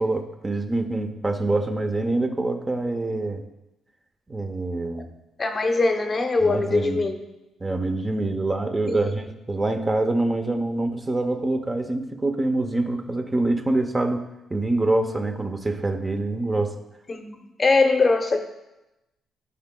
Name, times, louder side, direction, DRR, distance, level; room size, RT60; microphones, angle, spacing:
voice 1, 0.0-3.4 4.3-5.1 6.4-7.0 7.6-16.8, right 2 dB, 20° right, 5 dB, 0.7 m, -25 dB
voice 2, 5.4-7.2 8.9-9.2 17.1-18.4, left 3 dB, 30° left, 5 dB, 0.8 m, -22 dB
14.5 x 4.8 x 2.2 m, 0.97 s
cardioid pair, 90°, 0 cm